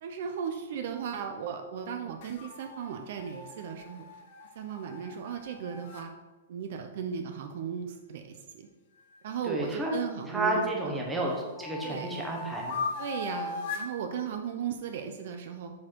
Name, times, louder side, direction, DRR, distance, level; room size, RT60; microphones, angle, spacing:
voice 1, 0.0-4.0 4.6-6.1 6.5-8.7 9.2-11.0 11.8-12.1 13.0-15.7, right 7 dB, 45° right, 5 dB, 0.5 m, -36 dB
sound 1, 2.2-6.1 9.0-10.2 10.7-13.9, left 4 dB, 40° left, 0.7 m, -40 dB
voice 2, 9.4-9.9 10.3-12.8, right 2 dB, 5° right, -2 dB, 1.0 m, -31 dB
7.3 x 4.3 x 4.5 m, 1.2 s
hypercardioid pair, 175°, 0 cm